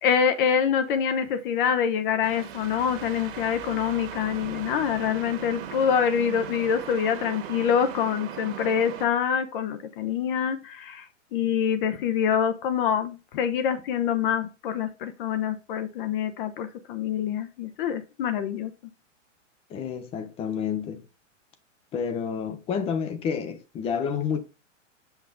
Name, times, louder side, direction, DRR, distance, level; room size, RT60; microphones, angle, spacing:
voice 1, 0.0-11.0 11.3-18.7, left 8 dB, 45° left, 0.9 m, -25 dB
sound 1, 2.2-9.0, right 9 dB, 45° right, 1.5 m, -39 dB
voice 2, 19.7-21.0 21.9-24.4, left 7 dB, 15° left, 0.6 m, -29 dB
5.7 x 5.7 x 3.6 m
hypercardioid pair, 140°, 38 cm